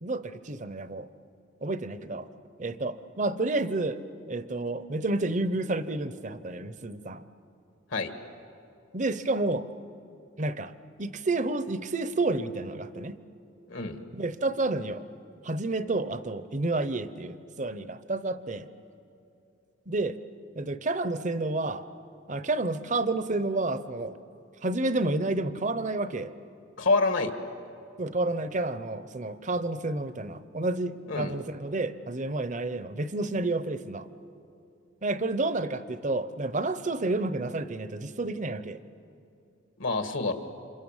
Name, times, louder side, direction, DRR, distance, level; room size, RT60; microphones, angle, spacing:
voice 1, 0.0-1.1 1.6-2.3 2.6-4.0 4.3-7.2 8.9-9.7 10.4-10.7 11.0-13.2 14.1-15.0 15.4-18.7 19.9-20.2 20.6-21.8 22.3-24.2 24.6-26.3 28.0-34.1 35.0-38.8, right 2 dB, 40° right, 13 dB, 0.8 m, -30 dB
voice 2, 13.7-14.0 26.8-27.3 31.1-31.3 39.8-40.3, left 3 dB, 70° left, 7 dB, 1.8 m, -26 dB
28.5 x 27.0 x 7.3 m, 2.7 s
head